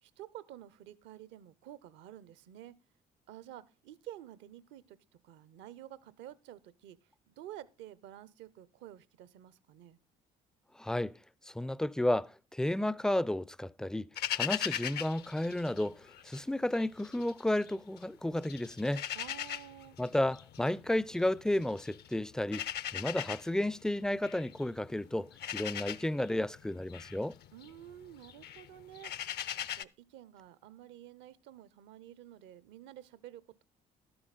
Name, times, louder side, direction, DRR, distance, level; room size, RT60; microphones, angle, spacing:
voice 1, 0.0-2.7 3.3-5.0 5.2-7.0 7.3-10.0 19.1-20.0 27.5-29.4 29.7-33.6, right 12 dB, 65° right, 0.8 m, -50 dB
voice 2, 10.8-11.2 11.4-14.1 14.3-19.0 20.0-22.6 22.9-27.4, left 1 dB, 5° left, 0.4 m, -32 dB
sound 1, 14.2-16.4 16.7-18.0 18.4-29.8, left 11 dB, 55° left, 0.6 m, -40 dB
12.5 x 7.9 x 4.1 m
hypercardioid pair, 50°, 20 cm